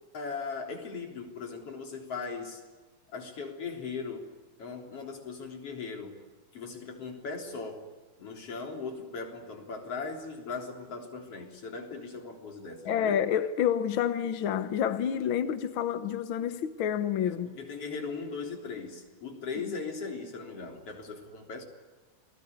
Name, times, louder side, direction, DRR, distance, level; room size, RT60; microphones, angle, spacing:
voice 1, 0.1-2.6 3.1-4.3 4.6-6.2 6.5-7.8 8.2-13.2 17.2-21.6, left 4 dB, 45° left, 4.4 m, -38 dB
voice 2, 12.8-17.5, left 9 dB, 65° left, 1.3 m, -28 dB
29.5 x 20.0 x 9.7 m
omnidirectional pair, 3.7 m